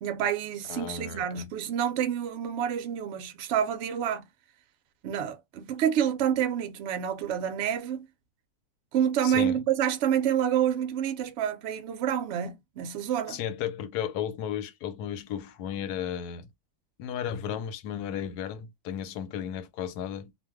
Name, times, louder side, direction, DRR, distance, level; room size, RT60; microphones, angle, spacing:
voice 1, 0.0-4.3 5.0-8.1 8.9-13.4, right 9 dB, 65° right, 0.7 m, -28 dB
voice 2, 0.7-1.5 9.2-9.6 13.3-16.5 17.0-20.3, left 9 dB, 80° left, 1.1 m, -34 dB
2.6 x 2.1 x 3.4 m
omnidirectional pair, 1.7 m